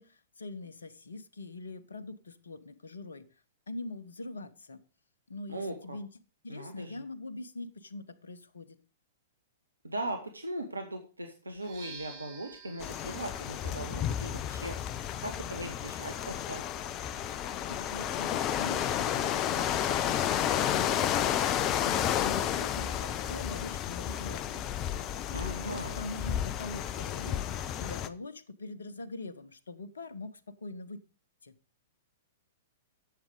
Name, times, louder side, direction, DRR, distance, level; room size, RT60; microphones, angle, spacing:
voice 1, 0.0-3.3 3.7-4.8 5.3-6.1 6.4-8.8 17.7-25.0 25.3-31.0 31.4-31.5, left 3 dB, 70° left, 13 dB, 1.0 m, -43 dB
voice 2, 5.5-6.0 6.5-7.0 9.8-14.8 15.2-16.7 25.3-26.0, right 1 dB, 80° right, 5 dB, 1.3 m, -39 dB
sound 1, 11.5-19.3, right 5 dB, 45° right, 3.3 m, -55 dB
sound 2, 12.8-28.1, left 10 dB, 30° left, 0.6 m, -32 dB
11.0 x 7.7 x 5.0 m, 0.36 s
figure-of-eight pair, 105°, 0 cm